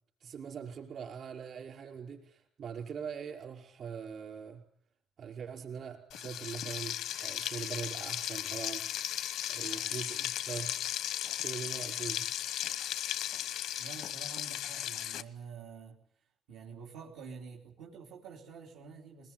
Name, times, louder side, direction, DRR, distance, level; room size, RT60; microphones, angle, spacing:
voice 1, 0.2-4.6 5.2-8.8 9.5-10.7 11.4-12.3, right 7 dB, 60° right, 3 dB, 5.2 m, -42 dB
Frying (food), 6.1-15.2, left 11 dB, 85° left, 1.0 m, -36 dB
voice 2, 9.6-10.0 13.8-16.0 16.5-19.3, right 5 dB, 90° right, -2 dB, 3.5 m, -48 dB
21.0 x 20.5 x 9.1 m, 0.66 s
cardioid pair, 90°, 0 cm